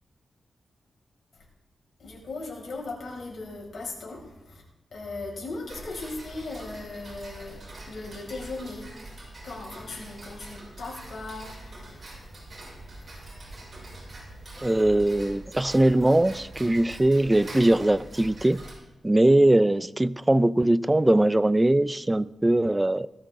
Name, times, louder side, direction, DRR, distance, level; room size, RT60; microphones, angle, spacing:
voice 1, 2.0-4.6 4.9-7.6 7.9-8.8 9.4-14.7, left 3 dB, 65° left, 5.7 m, -39 dB
Tick-tock, 5.7-18.7, right 1 dB, 40° right, 5.9 m, -44 dB
voice 2, 14.6-18.6 19.0-23.1, right 1 dB, 15° right, 0.4 m, -21 dB
19.5 x 13.5 x 3.7 m
wide cardioid pair, 135°, 0 cm